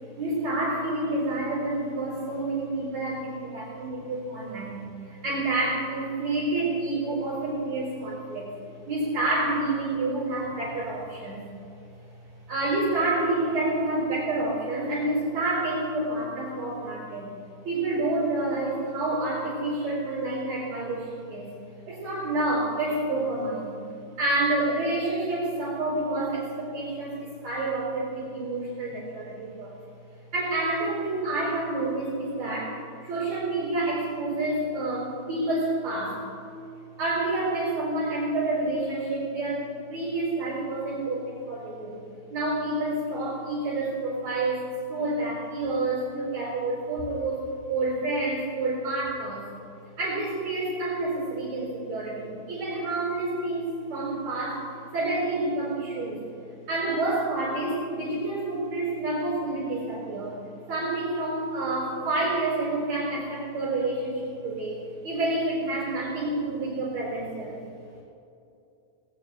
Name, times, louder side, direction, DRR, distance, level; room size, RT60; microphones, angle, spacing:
voice 1, 0.2-8.5 8.9-11.4 12.5-17.3 17.6-21.5 21.9-23.8 24.2-29.8 30.3-32.8 33.0-36.3 37.0-42.0 42.3-49.5 50.0-56.2 56.7-60.4 60.7-67.6, right 2 dB, 45° right, -5 dB, 5.4 m, -28 dB
20.0 x 19.0 x 3.0 m, 2.7 s
omnidirectional pair, 4.4 m